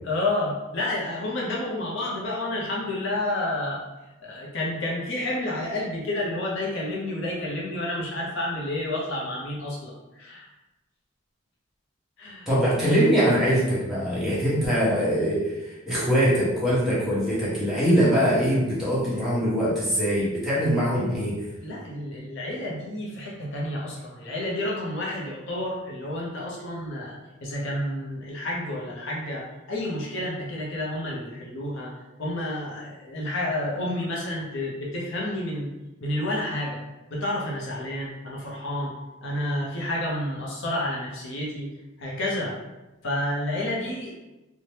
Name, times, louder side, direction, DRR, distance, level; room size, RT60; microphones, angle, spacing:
voice 1, 0.0-3.8 4.2-10.5 12.2-12.5 21.6-31.9 32.2-35.7 36.0-36.8 37.1-39.0 39.2-41.7 42.0-42.6 43.0-44.1, left 1 dB, 60° left, -4 dB, 0.6 m, -30 dB
voice 2, 12.5-21.4, equal, ahead, -10 dB, 0.9 m, -22 dB
2.7 x 2.1 x 3.1 m, 1.0 s
head